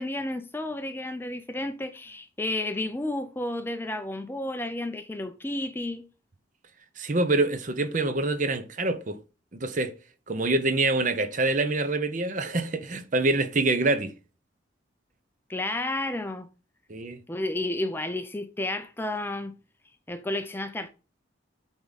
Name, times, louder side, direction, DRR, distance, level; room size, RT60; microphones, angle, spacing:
voice 1, 0.0-6.0 15.5-16.5 17.3-19.5 20.1-20.9, left 1 dB, 10° left, 0.4 m, -31 dB
voice 2, 7.0-9.2 9.6-9.9 10.3-14.1 16.9-17.2, right 2 dB, 40° right, 0.7 m, -25 dB
8.4 x 3.6 x 4.0 m
head